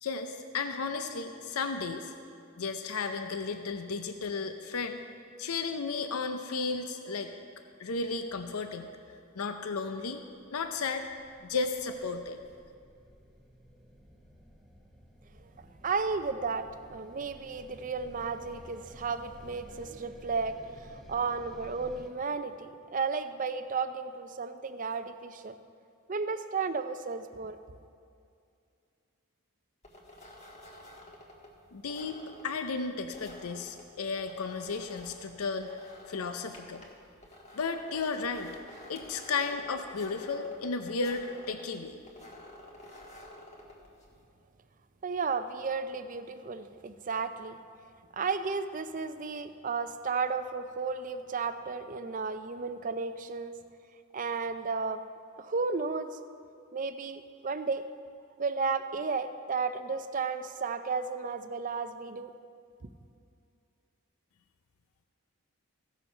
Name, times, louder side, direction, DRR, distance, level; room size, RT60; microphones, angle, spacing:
voice 1, 0.0-2.1 2.6-5.0 5.4-7.3 7.8-8.9 9.4-10.2 10.5-11.1 11.4-12.4 31.7-36.8 37.5-38.6 38.9-42.0, left 4 dB, 80° left, 7 dB, 0.6 m, -34 dB
sound 1, 9.6-22.1, equal, ahead, 0.9 m, -54 dB
voice 2, 15.8-25.5 26.1-27.6 45.0-47.6 48.1-53.6 54.1-55.0 55.4-56.2 56.7-57.8 58.4-62.3, right 4 dB, 35° right, 10 dB, 0.5 m, -33 dB
sound 2, 29.8-44.2, left 1 dB, 30° left, 1.6 m, -51 dB
15.5 x 7.1 x 5.6 m, 2.4 s
head